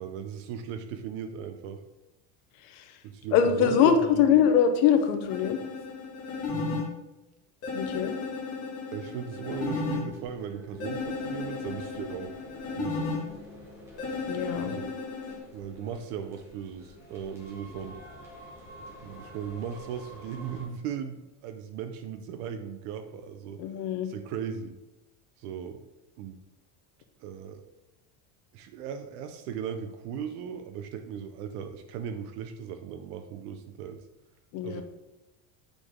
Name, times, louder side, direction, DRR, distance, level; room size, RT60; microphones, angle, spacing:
voice 1, 0.0-1.8 3.0-4.3 6.5-6.8 8.9-12.3 12.8-13.1 14.6-15.0 15.5-18.0 19.0-23.6 24.0-24.7 25.4-25.8 26.2-26.4 27.2-27.6 28.5-34.0 34.6-34.8, right 8 dB, 70° right, 7 dB, 0.7 m, -37 dB
voice 2, 3.3-5.6 7.7-8.1 14.3-14.7 23.6-24.1 34.5-34.8, left 8 dB, 70° left, 6 dB, 1.0 m, -23 dB
sound 1, 5.3-6.8 7.6-10.0 10.8-13.2 14.0-15.4, left 4 dB, 30° left, 1.7 m, -34 dB
sound 2, 9.5-20.6, equal, 5° right, 1.3 m, -48 dB
8.1 x 4.2 x 3.6 m, 0.99 s
cardioid pair, 175°, 46 cm